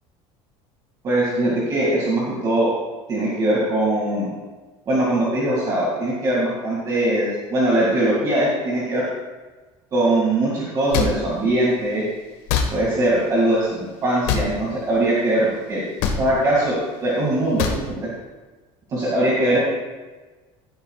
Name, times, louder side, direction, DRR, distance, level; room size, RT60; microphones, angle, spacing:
voice 1, 1.0-2.7 3.1-4.3 4.9-9.0 9.9-12.1 12.7-15.8 16.2-18.1 18.9-19.6, right 1 dB, 30° right, -6 dB, 2.4 m, -21 dB
sound 1, 10.9-11.1 12.5-12.7 14.2-14.5 16.0-16.2 17.6-17.8, left 7 dB, 80° left, 1.6 m, -21 dB
16.5 x 12.5 x 2.5 m, 1.3 s
cardioid pair, 180°, 12 cm